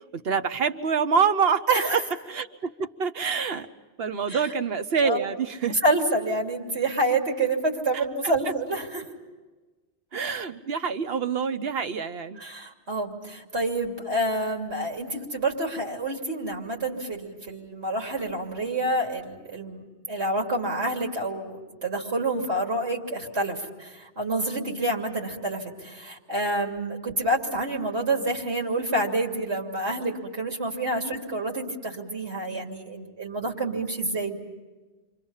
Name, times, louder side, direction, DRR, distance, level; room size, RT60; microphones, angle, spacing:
voice 1, 0.1-1.6 2.3-3.7 4.0-5.8 10.1-12.4, right 6 dB, 65° right, 10 dB, 1.2 m, -26 dB
voice 2, 1.7-2.0 4.3-4.5 5.0-5.2 5.7-9.0 12.4-34.4, right 1 dB, 80° right, 1 dB, 3.3 m, -28 dB
29.5 x 24.5 x 5.7 m, 1.2 s
omnidirectional pair, 1.1 m